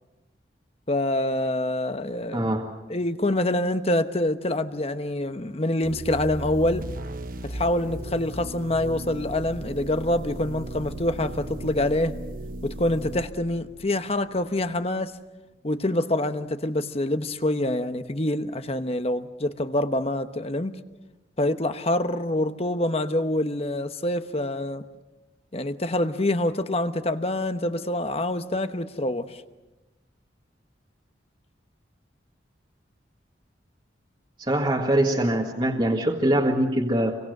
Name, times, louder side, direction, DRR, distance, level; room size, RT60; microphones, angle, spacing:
voice 1, 0.9-2.5 2.9-6.9 7.4-12.1 12.6-15.2 15.6-20.8 21.4-24.8 25.5-29.4, left 1 dB, 35° left, 1.1 m, -26 dB
voice 2, 2.3-2.7 34.4-37.2, right 1 dB, 25° right, 1.8 m, -23 dB
sound 1, 5.8-14.5, right 1 dB, 50° right, 1.0 m, -36 dB
28.0 x 23.5 x 6.7 m
head